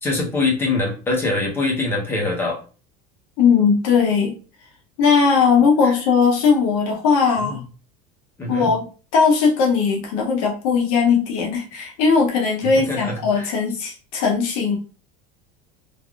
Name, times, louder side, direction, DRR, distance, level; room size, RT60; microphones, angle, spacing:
voice 1, 0.0-2.6 5.8-5.9 7.4-7.6 8.4-8.7 12.6-13.5, left 3 dB, 10° left, -2 dB, 0.7 m, -24 dB
voice 2, 3.4-4.3 5.0-7.6 8.5-8.9 9.1-14.8, left 5 dB, 55° left, 0 dB, 0.7 m, -18 dB
3.4 x 2.4 x 2.3 m, 0.36 s
cardioid pair, 180°, 21 cm